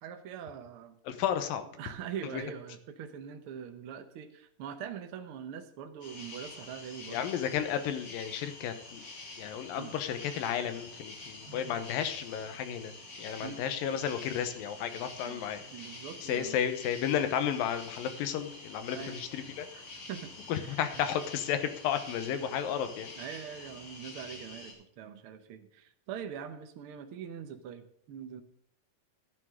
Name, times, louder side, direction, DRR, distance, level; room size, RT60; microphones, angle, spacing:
voice 1, 0.0-0.9 1.8-7.2 9.8-9.9 11.5-11.8 13.4-13.6 15.2-15.5 15.7-16.6 18.9-19.2 19.7-20.3 20.6-21.0 23.2-28.4, right 8 dB, 80° right, 6 dB, 1.2 m, -43 dB
voice 2, 1.1-1.7 2.3-2.4 7.1-9.0 9.4-15.6 16.2-19.7 20.5-23.1, left 9 dB, 90° left, 10 dB, 2.8 m, -33 dB
sound 1, 6.0-24.7, left 3 dB, 45° left, 4.1 m, -47 dB
13.0 x 11.5 x 3.7 m, 0.68 s
omnidirectional pair, 3.9 m